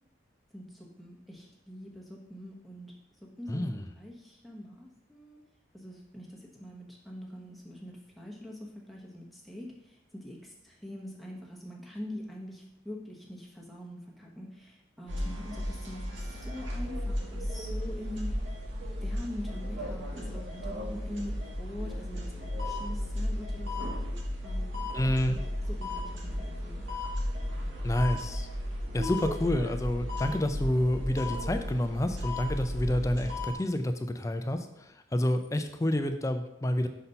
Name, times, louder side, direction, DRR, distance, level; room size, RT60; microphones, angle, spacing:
voice 1, 0.5-3.7 3.9-5.4 5.7-18.5 19.0-23.9 24.4-26.8, left 1 dB, ahead, -3 dB, 1.0 m, -44 dB
voice 2, 3.5-3.9 24.9-25.4 27.8-28.5 28.9-36.9, left 1 dB, 15° left, 7 dB, 0.4 m, -29 dB
sound 1, 15.1-33.5, left 1 dB, 90° right, 1.4 m, -34 dB
5.6 x 4.2 x 5.3 m, 0.88 s
head